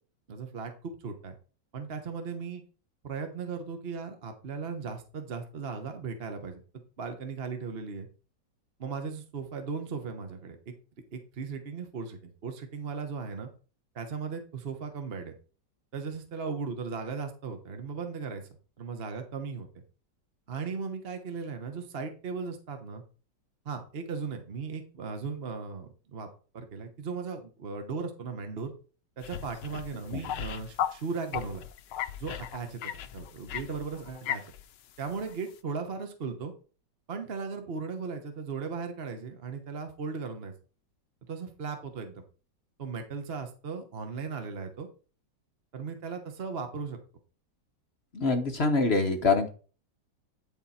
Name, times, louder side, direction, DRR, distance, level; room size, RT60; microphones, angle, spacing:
voice 1, 0.3-1.3 1.7-2.6 3.0-6.6 7.0-8.1 8.8-10.7 11.1-13.5 13.9-15.3 15.9-18.4 18.8-19.7 20.5-23.0 23.6-26.3 26.5-28.7 29.2-31.6 32.2-32.8 33.1-34.4 35.0-36.5 37.1-40.5 41.3-42.2 42.8-44.9 45.7-47.0, right 5 dB, 40° right, 5 dB, 1.1 m, -37 dB
sound 1, 29.2-31.0 31.3-34.6 35.1-35.3, left 10 dB, 75° left, 1.3 m, -36 dB
voice 2, 48.1-49.5, left 3 dB, 45° left, 5 dB, 0.9 m, -25 dB
10.5 x 4.4 x 4.2 m, 0.38 s
omnidirectional pair, 2.0 m